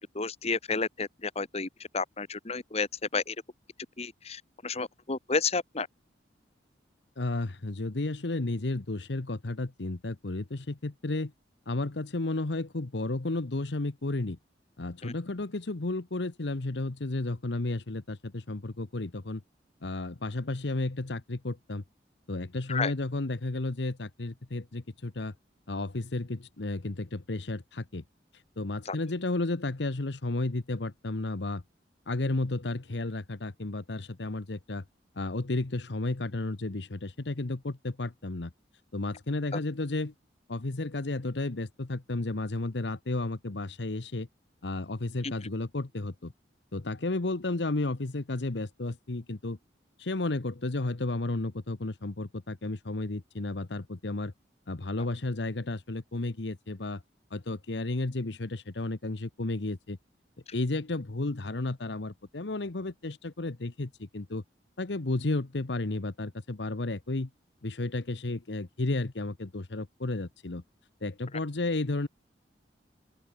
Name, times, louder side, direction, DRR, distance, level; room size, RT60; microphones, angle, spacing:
voice 1, 0.1-3.4 4.0-5.9 15.0-15.1 22.7-22.9 28.8-29.0, left 4 dB, 35° left, 1.4 m, -31 dB
voice 2, 7.2-11.3 11.7-14.4 14.8-19.4 19.8-21.8 22.3-25.3 25.7-28.0 28.6-31.6 32.1-34.8 35.2-38.5 38.9-40.1 40.5-44.3 44.6-46.3 46.7-49.6 50.0-54.3 54.7-57.0 57.3-60.0 60.5-64.4 64.8-67.3 67.6-70.6 71.0-72.1, left 2 dB, 75° left, 1.1 m, -32 dB
open air
head